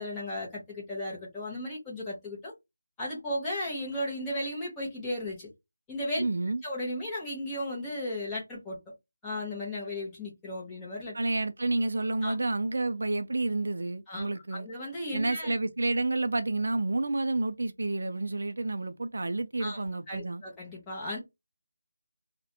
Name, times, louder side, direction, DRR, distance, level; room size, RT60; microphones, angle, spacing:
voice 1, 0.0-2.5 3.0-5.5 5.9-6.2 6.6-8.8 9.2-11.2 12.2-12.3 14.1-15.5 19.6-19.8 20.1-21.2, left 1 dB, 5° left, 0.7 m, -35 dB
voice 2, 6.2-6.6 11.1-14.7 15.1-20.4, right 2 dB, 60° right, 0.3 m, -30 dB
2.4 x 2.1 x 2.7 m
figure-of-eight pair, 175°, 0 cm